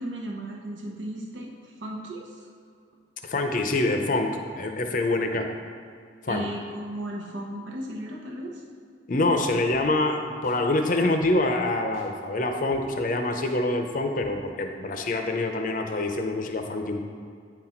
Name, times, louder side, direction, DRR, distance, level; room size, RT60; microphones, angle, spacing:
voice 1, 0.0-2.5 6.3-8.6, right 1 dB, 80° right, -1 dB, 0.9 m, -35 dB
voice 2, 3.2-5.5 6.2-6.5 9.1-17.0, left 2 dB, 45° left, 4 dB, 0.6 m, -25 dB
sound 1, 9.7-9.8 10.4-10.6 11.2-11.3 11.9-12.1 12.7-12.8 13.4-13.6 14.2-14.3 14.9-15.1, right 1 dB, 35° right, 1.0 m, -48 dB
9.0 x 4.1 x 4.4 m, 2.3 s
head